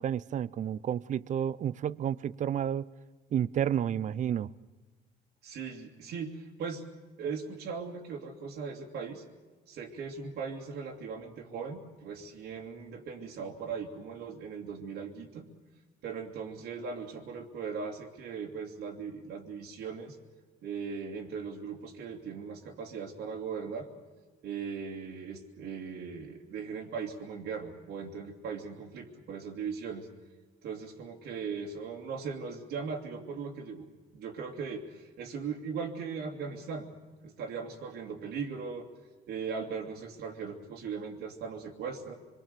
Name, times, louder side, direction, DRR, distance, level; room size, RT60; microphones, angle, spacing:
voice 1, 0.0-2.9 3.3-4.5, right 9 dB, 45° right, 0.7 m, -31 dB
voice 2, 5.4-6.9 7.2-9.2 9.7-15.5 16.0-20.2 20.6-23.9 24.4-30.1 30.6-33.9 34.1-36.9 37.2-38.9 39.3-42.1, right 5 dB, 75° right, 2.8 m, -39 dB
26.0 x 22.5 x 6.9 m
cardioid pair, 110°, 17 cm